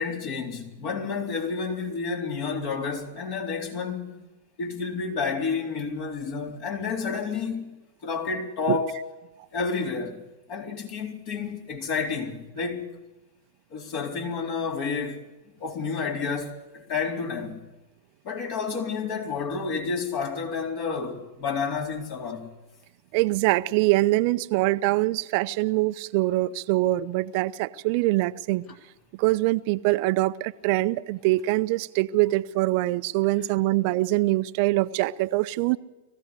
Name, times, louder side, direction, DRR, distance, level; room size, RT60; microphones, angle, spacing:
voice 1, 0.0-4.2 4.6-7.7 8.0-9.0 9.5-10.2 10.5-12.9 13.7-15.2 15.6-17.6 18.2-22.5, left 5 dB, 50° left, 4.1 m, -30 dB
voice 2, 23.1-28.6 29.2-35.8, right 18 dB, 50° right, 0.7 m, -24 dB
20.5 x 15.5 x 8.2 m
hypercardioid pair, 100°, 0 cm